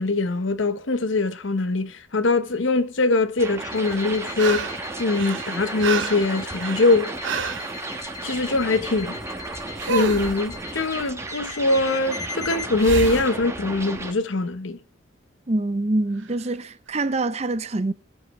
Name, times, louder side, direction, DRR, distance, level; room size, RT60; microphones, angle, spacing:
voice 1, 0.0-4.7 5.0-7.1 8.2-9.2 9.9-14.8, left 2 dB, 75° left, 0.9 m, -22 dB
sound 1, 3.4-14.1, right 2 dB, 15° right, 1.3 m, -34 dB
sound 2, 3.6-13.2, left 4 dB, 20° left, 1.4 m, -40 dB
sound 3, 3.9-4.9 5.1-7.7 9.8-10.4 12.8-13.3 16.2-16.3, right 4 dB, 75° right, 1.0 m, -29 dB
voice 2, 15.5-17.9, right 2 dB, 35° right, 0.6 m, -25 dB
20.5 x 7.7 x 3.1 m
head